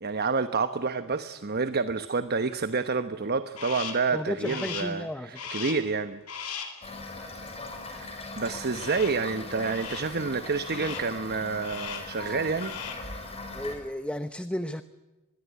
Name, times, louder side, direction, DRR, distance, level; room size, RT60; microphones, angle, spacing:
voice 1, 0.0-6.2 7.9-12.8, right 4 dB, 45° right, 10 dB, 1.0 m, -29 dB
Crow, 3.6-4.1 4.4-5.0 5.3-5.9 6.3-6.8 8.7-9.3 9.6-10.2 10.6-11.2 11.6-12.2 12.5-13.1, left 6 dB, 70° left, 4.0 m, -38 dB
voice 2, 4.1-5.5 13.5-14.8, left 1 dB, 5° left, 11 dB, 0.8 m, -33 dB
Toilet flush / Fill (with liquid), 6.8-13.8, left 2 dB, 30° left, 5.9 m, -40 dB
25.0 x 21.5 x 9.4 m, 1.1 s
head